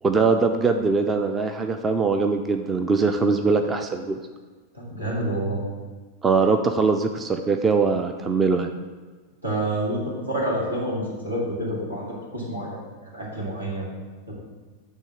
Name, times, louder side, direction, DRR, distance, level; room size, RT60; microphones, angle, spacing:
voice 1, 0.0-4.2 6.2-8.7, right 4 dB, 20° right, 6 dB, 0.4 m, -22 dB
voice 2, 4.7-5.6 9.4-12.8 13.1-13.9 14.3-14.4, right 1 dB, 80° right, -5 dB, 2.1 m, -28 dB
9.0 x 3.3 x 5.8 m, 1.3 s
figure-of-eight pair, 90°, 0 cm